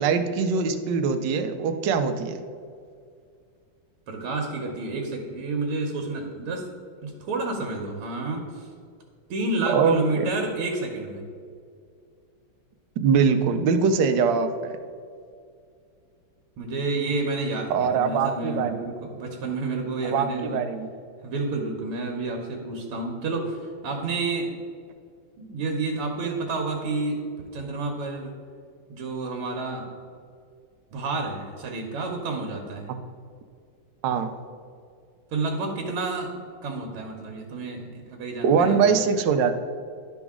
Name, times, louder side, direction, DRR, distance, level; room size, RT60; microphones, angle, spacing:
voice 1, 0.0-2.4 9.7-10.3 13.0-14.8 17.7-18.9 20.1-20.9 32.9-33.0 34.0-34.3 38.4-39.6, right 6 dB, 70° right, 7 dB, 1.1 m, -22 dB
voice 2, 4.1-6.7 7.0-8.7 9.3-11.2 16.6-20.6 21.2-24.5 25.4-27.2 27.5-28.3 28.9-29.9 30.9-32.9 35.3-36.3 36.6-38.8, right 3 dB, 90° right, 2 dB, 1.8 m, -30 dB
11.5 x 4.0 x 3.6 m, 2.2 s
omnidirectional pair, 2.4 m